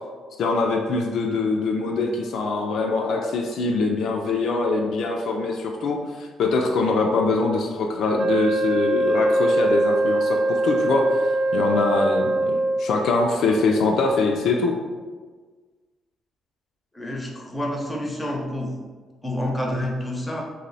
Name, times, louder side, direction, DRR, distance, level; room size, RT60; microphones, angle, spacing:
voice 1, 0.4-14.7, left 3 dB, 70° left, 1 dB, 0.3 m, -23 dB
Wind instrument woodwind instrument, 8.2-12.9, right 2 dB, 30° right, 0.5 m, -22 dB
voice 2, 16.9-18.7 19.2-20.4, left 1 dB, 10° left, 0 dB, 0.6 m, -28 dB
2.6 x 2.0 x 3.9 m, 1.4 s
cardioid pair, 90°, 0 cm